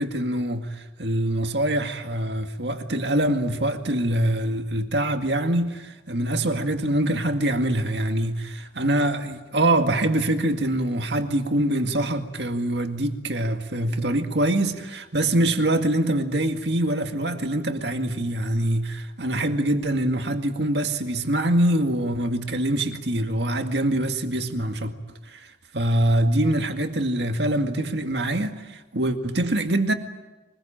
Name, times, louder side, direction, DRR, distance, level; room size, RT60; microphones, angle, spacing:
voice 1, 0.0-25.0 25.3-29.9, right 1 dB, 70° right, 2.1 m, -24 dB
24.0 x 21.0 x 8.9 m
head